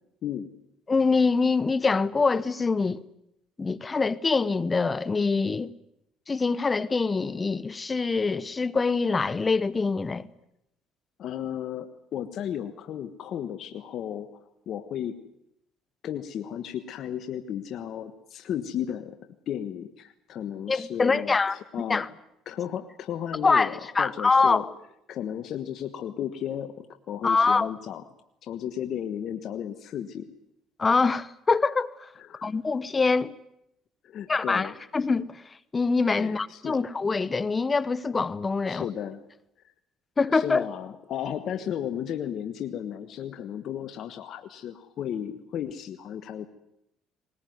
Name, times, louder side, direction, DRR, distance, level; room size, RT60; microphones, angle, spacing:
voice 1, 0.9-3.0 3.6-5.7 6.3-10.3 20.7-21.6 21.9-22.1 23.4-24.7 27.2-27.7 30.8-32.1 32.4-33.4 34.3-35.4 35.7-38.9 40.2-40.6, left 4 dB, 25° left, 0.9 m, -24 dB
voice 2, 11.2-15.2 16.0-19.2 19.5-22.1 22.4-24.6 25.1-28.0 28.4-30.3 32.2-32.5 34.0-34.7 36.2-36.8 38.7-39.2 40.3-46.5, left 9 dB, 60° left, 1.4 m, -34 dB
20.0 x 19.5 x 9.4 m
supercardioid pair, 85°, 0 cm